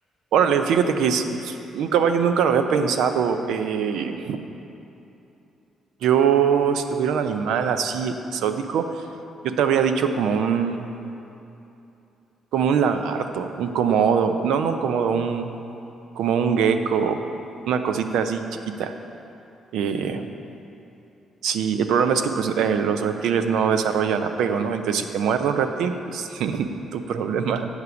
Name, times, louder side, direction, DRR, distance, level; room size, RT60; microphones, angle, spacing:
voice 1, 0.3-4.4 6.0-8.8 9.4-10.8 12.5-15.5 16.2-17.2 17.7-18.4 18.8-18.9 19.7-20.2 21.4-27.7, right 7 dB, 85° right, 8 dB, 0.5 m, -22 dB
8.1 x 5.9 x 7.0 m, 2.9 s
cardioid pair, 90°, 0 cm